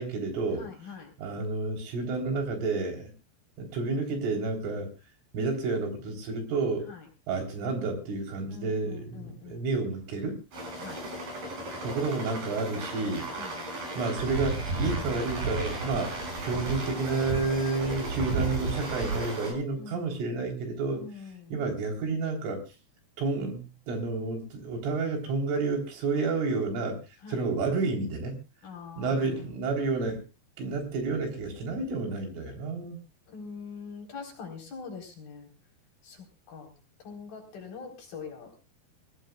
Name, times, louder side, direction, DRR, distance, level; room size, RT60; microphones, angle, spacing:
voice 1, 0.0-0.7 1.2-3.1 3.6-4.9 5.3-6.9 7.3-10.4 11.8-13.3 14.0-21.0 21.5-22.6 23.2-28.3 29.0-30.2 30.6-33.0, right 3 dB, 90° right, 2 dB, 6.5 m, -30 dB
voice 2, 0.6-1.1 6.9-7.0 8.5-9.7 10.8-11.1 13.4-13.6 19.8-20.1 20.9-21.5 27.2-27.4 28.6-29.5 33.3-35.5 36.0-36.7 37.0-38.5, left 5 dB, 50° left, 1 dB, 5.9 m, -43 dB
sound 1, 10.5-19.5, right 2 dB, 45° right, 9.1 m, -33 dB
23.5 x 18.0 x 2.4 m, 0.31 s
omnidirectional pair, 5.5 m